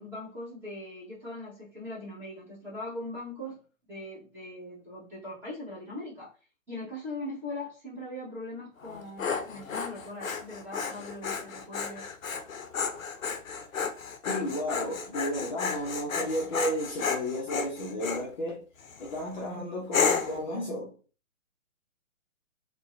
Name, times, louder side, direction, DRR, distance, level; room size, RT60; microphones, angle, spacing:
voice 1, 0.0-3.6 3.9-6.3 6.7-12.1, left 1 dB, 5° right, 0.9 m, -40 dB
Dog, 8.8-18.3 18.8-19.2 19.9-20.4, left 5 dB, 90° left, 0.6 m, -32 dB
voice 2, 14.2-18.6 19.0-20.9, equal, 35° left, 0.5 m, -33 dB
2.6 x 2.2 x 2.4 m
hypercardioid pair, 140°, 39 cm